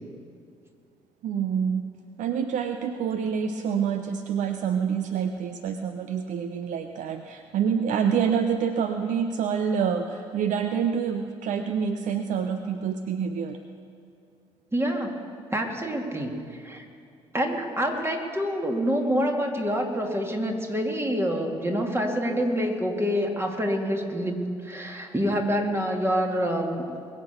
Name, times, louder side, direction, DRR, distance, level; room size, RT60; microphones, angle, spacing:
voice 1, 1.2-13.6, right 7 dB, 55° right, 8 dB, 0.7 m, -27 dB
voice 2, 14.7-15.2 15.5-16.8 17.3-26.8, equal, 15° right, 2 dB, 2.4 m, -27 dB
21.5 x 8.2 x 6.9 m, 2.3 s
figure-of-eight pair, 45°, 15 cm